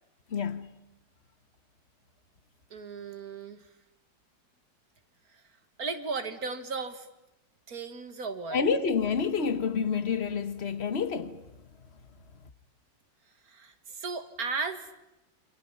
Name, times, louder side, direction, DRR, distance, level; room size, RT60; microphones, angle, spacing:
voice 1, 0.3-0.7 8.5-11.4, left 6 dB, 40° left, 1.4 m, -28 dB
voice 2, 2.7-3.7 5.3-5.4 5.8-7.1 7.7-8.6 13.5-14.9, right 4 dB, 50° right, 2.2 m, -36 dB
29.5 x 26.5 x 5.6 m
omnidirectional pair, 2.0 m